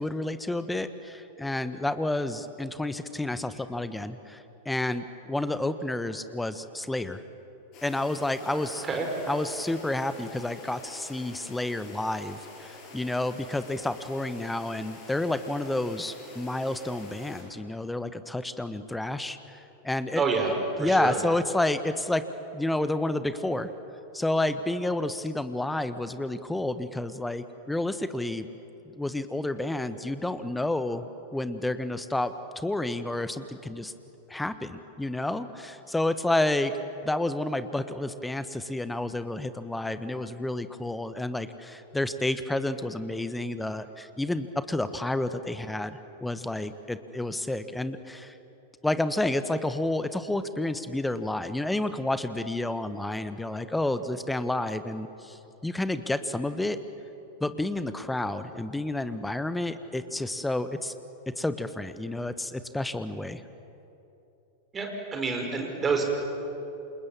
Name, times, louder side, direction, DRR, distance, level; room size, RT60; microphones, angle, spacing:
voice 1, 0.0-7.2 7.8-8.9 9.3-20.2 20.8-22.2 22.5-23.7 24.1-28.5 28.9-33.9 34.3-36.7 37.0-48.4 48.8-56.8 57.4-60.9 61.4-63.4, left 1 dB, 5° left, 12 dB, 1.2 m, -30 dB
sound 1, 7.7-17.4, left 3 dB, 40° left, 7.4 m, -47 dB
voice 2, 20.2-21.2 64.7-66.0, right 4 dB, 20° right, 2 dB, 5.4 m, -28 dB
29.5 x 27.5 x 7.5 m, 2.9 s
figure-of-eight pair, 90°, 0 cm